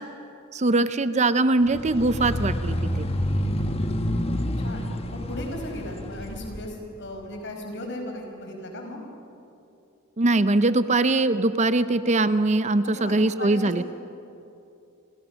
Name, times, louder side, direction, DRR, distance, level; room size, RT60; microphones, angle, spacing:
voice 1, 0.5-3.1 10.2-13.8, right 2 dB, 30° right, 12 dB, 0.7 m, -22 dB
sound 1, 1.7-6.6, left 1 dB, 30° left, 1.4 m, -28 dB
voice 2, 4.6-9.0 12.9-13.8, left 1 dB, 55° left, 2 dB, 5.4 m, -36 dB
30.0 x 26.5 x 6.4 m, 2.7 s
head